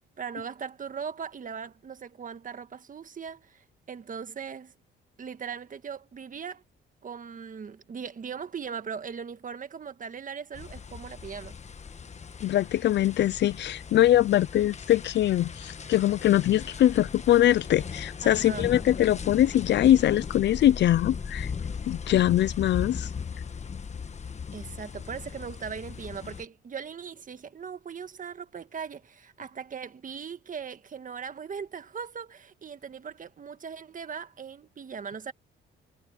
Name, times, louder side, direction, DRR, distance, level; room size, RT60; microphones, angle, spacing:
voice 1, 0.2-4.7 5.2-6.6 7.0-11.5 18.2-18.7 24.5-35.3, right 6 dB, 40° right, 1.6 m, -39 dB
sound 1, 10.5-26.5, left 6 dB, 35° left, 1.3 m, -38 dB
voice 2, 12.4-21.5 21.9-23.1, left 12 dB, 65° left, 0.5 m, -22 dB
cardioid pair, 90°, 20 cm